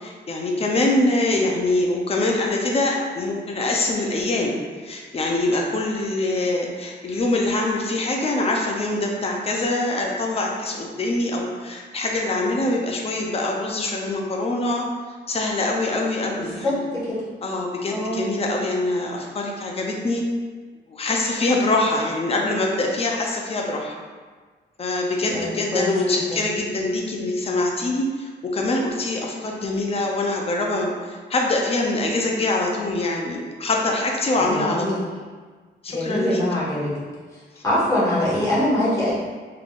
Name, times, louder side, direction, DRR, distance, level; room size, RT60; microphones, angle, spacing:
voice 1, 0.0-4.5 4.8-14.9 15.3-16.8 17.4-20.2 20.9-23.9 24.8-34.9 35.8-36.4, left 2 dB, 35° left, 0 dB, 0.5 m, -24 dB
voice 2, 16.4-17.2 17.9-18.2 25.2-26.4 34.4-35.1 35.9-37.0 37.6-39.1, left 1 dB, 15° left, -9 dB, 1.4 m, -24 dB
3.8 x 3.4 x 2.4 m, 1.5 s
wide cardioid pair, 145°, 19 cm